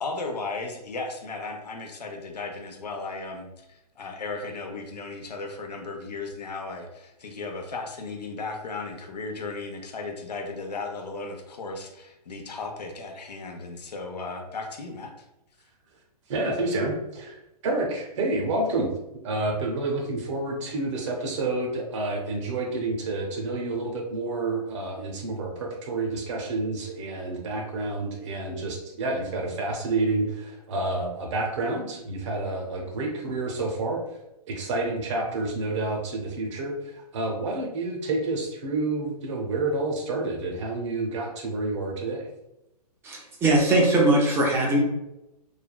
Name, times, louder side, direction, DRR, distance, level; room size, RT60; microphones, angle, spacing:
voice 1, 0.0-15.3, left 3 dB, 80° left, 3 dB, 0.6 m, -35 dB
voice 2, 16.3-34.0 34.5-42.3, right 2 dB, 45° right, 1 dB, 0.7 m, -29 dB
voice 3, 43.0-44.8, right 1 dB, 10° right, -1 dB, 0.4 m, -21 dB
3.3 x 2.2 x 2.2 m, 0.90 s
hypercardioid pair, 130°, 21 cm